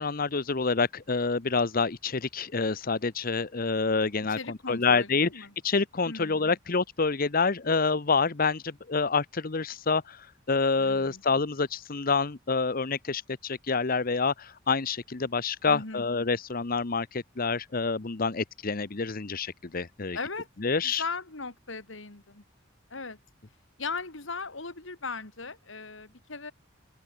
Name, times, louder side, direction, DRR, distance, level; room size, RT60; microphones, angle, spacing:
voice 1, 0.0-5.3 5.6-20.2 20.6-21.0, left 4 dB, 45° left, 0.9 m, -27 dB
voice 2, 4.2-5.5 6.1-6.5 10.8-11.2 15.7-16.0 20.1-20.5 20.8-22.4 22.9-23.2 23.8-26.5, left 4 dB, 75° left, 2.9 m, -38 dB
open air
head